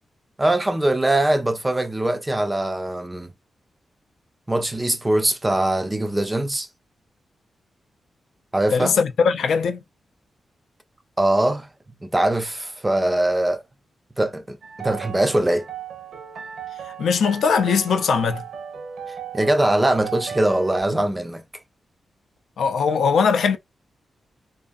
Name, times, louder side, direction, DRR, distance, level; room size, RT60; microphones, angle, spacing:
voice 1, 0.4-3.3 4.5-6.7 8.5-9.0 11.2-11.7 12.0-13.6 14.2-15.7 19.3-21.4, right 1 dB, 15° right, 0.3 m, -22 dB
voice 2, 8.7-9.8 16.9-18.4 22.6-23.6, left 6 dB, 85° left, 0.4 m, -20 dB
sound 1, 14.6-20.8, right 7 dB, 80° right, 0.7 m, -36 dB
2.5 x 2.4 x 2.4 m
wide cardioid pair, 155°, 0 cm